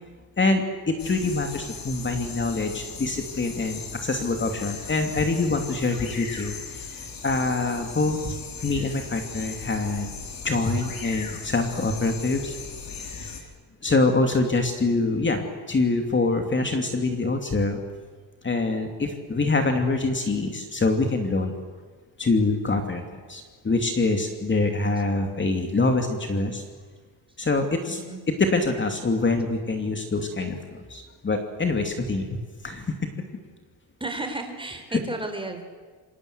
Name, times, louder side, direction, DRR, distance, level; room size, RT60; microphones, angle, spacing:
voice 1, 0.4-10.1 10.4-12.6 13.2-13.5 13.8-15.4 15.7-17.8 18.4-21.5 22.2-23.0 23.3-26.6 27.4-28.0 28.4-32.3 32.6-32.9 34.9-35.0, left 3 dB, 25° left, 5 dB, 2.8 m, -25 dB
sound 1, 1.0-13.4, left 5 dB, 55° left, 5.0 m, -38 dB
voice 2, 26.3-26.6 27.9-28.2 34.0-35.6, right 2 dB, 10° right, 5 dB, 4.6 m, -33 dB
28.0 x 26.5 x 8.1 m, 1.5 s
cardioid pair, 130°, 41 cm